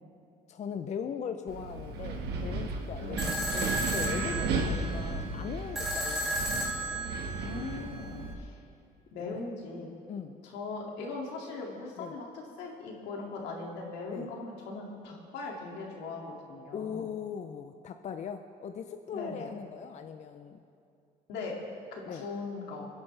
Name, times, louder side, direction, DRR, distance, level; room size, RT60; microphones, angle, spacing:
voice 1, 0.5-7.1 9.3-9.5 10.1-10.4 12.0-12.1 14.1-14.3 16.7-20.6 22.0-22.2, left 7 dB, 45° left, 8 dB, 0.6 m, -40 dB
Wind, 1.5-8.3, right 3 dB, 75° right, 1.6 m, -34 dB
sound 1, 3.2-8.2, right 1 dB, ahead, 2.9 m, -34 dB
voice 2, 4.6-5.1 7.4-8.6 9.1-9.9 10.4-17.1 19.1-19.5 21.3-21.6 21.9-22.9, left 3 dB, 85° left, -1 dB, 2.4 m, -40 dB
24.5 x 10.5 x 3.4 m, 2.5 s
cardioid pair, 110°, 17 cm